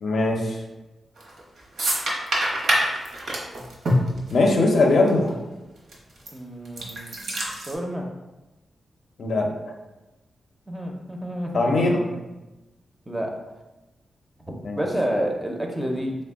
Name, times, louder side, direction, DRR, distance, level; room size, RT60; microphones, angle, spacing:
voice 1, 0.0-0.6 4.3-5.4 9.2-9.7 11.5-12.0 14.6-14.8, left 2 dB, 65° left, 1 dB, 0.5 m, -21 dB
sound 1, 1.2-1.4 1.8-4.8 5.1-5.2 5.9-6.3 6.6-7.7, equal, 70° right, 0.8 m, -25 dB
voice 2, 6.3-7.1 7.7-8.1 10.7-12.2 13.1-13.3 14.4-16.2, equal, 10° right, 0 dB, 0.5 m, -29 dB
3.7 x 2.1 x 3.5 m, 1.1 s
wide cardioid pair, 120°, 0 cm